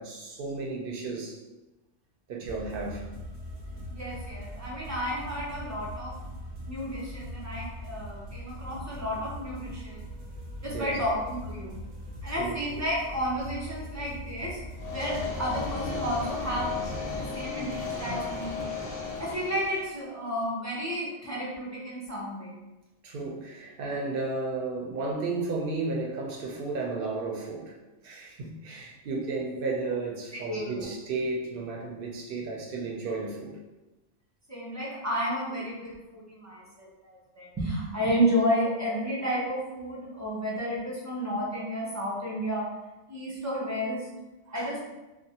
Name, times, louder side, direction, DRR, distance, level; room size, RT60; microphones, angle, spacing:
voice 1, 0.0-1.4 2.3-3.0 10.7-11.0 12.3-12.6 23.0-27.7 28.0-33.5 44.5-44.7, right 3 dB, 60° right, -1 dB, 0.7 m, -33 dB
sound 1, 2.4-17.3, equal, 85° right, 1.1 m, -41 dB
voice 2, 3.9-6.1 6.6-10.0 10.6-11.8 12.2-14.6 14.9-16.7 17.1-18.6 19.2-22.5 30.5-30.9 34.5-42.6 43.1-44.1 44.5-44.8, equal, 25° right, -6 dB, 0.4 m, -31 dB
sound 2, 14.8-20.0, left 4 dB, 60° left, 0.4 m, -35 dB
2.4 x 2.0 x 2.7 m, 1.1 s
omnidirectional pair, 1.2 m